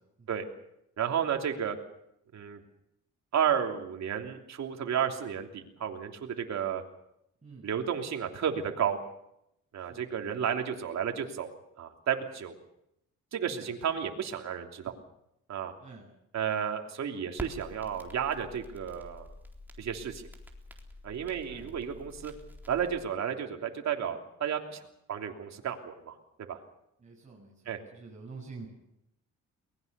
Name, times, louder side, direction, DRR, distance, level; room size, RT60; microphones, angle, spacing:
voice 1, 1.0-1.8 2.3-2.6 3.3-6.8 7.6-9.0 9.7-11.5 11.8-12.5 13.3-14.9 15.5-15.7 16.3-19.3 19.8-20.2 21.0-22.3 22.7-24.8 25.1-26.2 26.5-26.6 27.6-27.8, right 8 dB, 60° right, 3 dB, 3.2 m, -32 dB
Crackle, 17.3-23.1, equal, 5° right, 3.9 m, -47 dB
voice 2, 27.0-28.7, right 4 dB, 25° right, -4 dB, 7.6 m, -48 dB
23.0 x 20.0 x 6.8 m, 0.80 s
cardioid pair, 90°, 30 cm